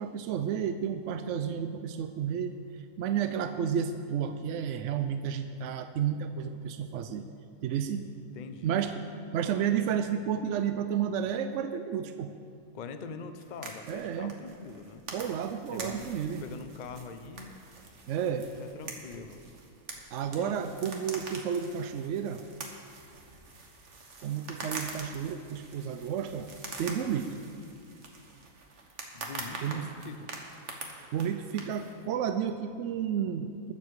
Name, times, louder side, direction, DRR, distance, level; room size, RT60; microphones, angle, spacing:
voice 1, 0.0-2.6 3.0-7.3 7.6-8.1 8.6-9.0 9.3-12.3 13.9-14.4 15.1-16.4 18.1-18.5 20.1-22.4 24.2-26.5 26.8-27.4 29.6-29.9 31.1-33.7, right 8 dB, 70° right, 9 dB, 0.7 m, -31 dB
voice 2, 8.3-8.8 12.7-15.0 15.7-16.1 16.4-17.6 18.6-19.4 20.4-20.7 29.1-30.3, left 5 dB, 55° left, 9 dB, 0.5 m, -43 dB
sound 1, 13.4-32.0, right 3 dB, 50° right, 1.6 m, -45 dB
20.5 x 7.0 x 4.7 m, 2.4 s
omnidirectional pair, 1.7 m